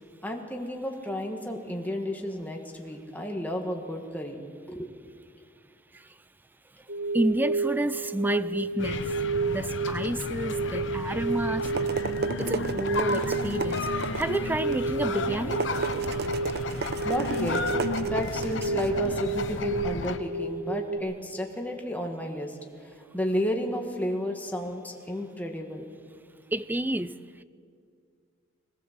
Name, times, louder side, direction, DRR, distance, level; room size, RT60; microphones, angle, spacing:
voice 1, 0.2-4.4 4.7-4.9 17.0-17.6 18.0-22.5 22.8-25.9, left 1 dB, 10° left, 1.6 m, -32 dB
sound 1, 6.9-21.0, right 4 dB, 80° right, 2.4 m, -31 dB
voice 2, 7.1-9.1 9.5-11.7 12.4-13.9 14.1-16.0 26.5-27.1, right 1 dB, 10° right, 0.4 m, -30 dB
sound 2, 8.8-20.2, left 3 dB, 70° left, 0.9 m, -33 dB
sound 3, 11.3-20.1, right 4 dB, 55° right, 0.7 m, -36 dB
21.5 x 18.5 x 7.4 m
head